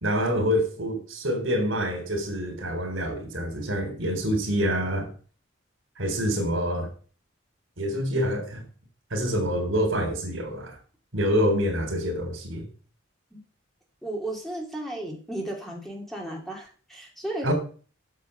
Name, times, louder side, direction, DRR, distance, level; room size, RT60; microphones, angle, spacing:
voice 1, 0.0-5.1 6.0-6.9 7.8-8.6 9.1-10.7 11.1-12.6 17.4-17.5, equal, 80° right, 3.4 m, -26 dB
voice 2, 14.0-17.5, right 1 dB, ahead, 2.5 m, -34 dB
8.4 x 7.0 x 6.6 m
head